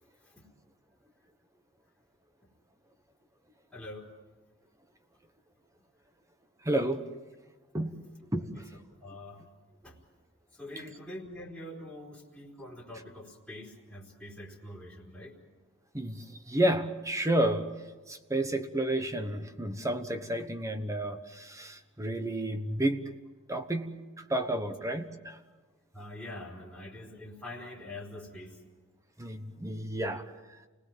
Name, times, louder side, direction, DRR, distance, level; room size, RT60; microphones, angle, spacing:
voice 1, 3.7-4.1 8.5-8.6 9.0-9.5 9.8-10.0 10.5-15.3 25.9-28.6, left 1 dB, ahead, -4 dB, 4.0 m, -44 dB
voice 2, 6.6-7.0 7.7-7.9 8.3-8.6 15.9-17.7 18.1-23.1 23.5-25.4 29.2-30.2, right 1 dB, 15° right, 8 dB, 1.2 m, -31 dB
29.5 x 19.0 x 7.5 m, 1.3 s
head